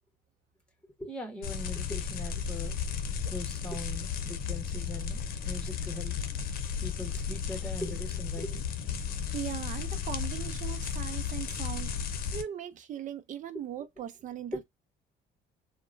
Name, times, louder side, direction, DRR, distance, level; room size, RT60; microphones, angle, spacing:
voice 1, 1.0-2.8 3.3-6.1 6.8-8.7 14.5-14.6, left 1 dB, 5° left, 1.2 m, -40 dB
sound 1, 1.4-12.4, left 7 dB, 60° left, 0.7 m, -34 dB
voice 2, 9.3-11.9 12.3-14.6, right 10 dB, 50° right, 0.6 m, -39 dB
2.9 x 2.2 x 2.5 m
cardioid pair, 110°, 17 cm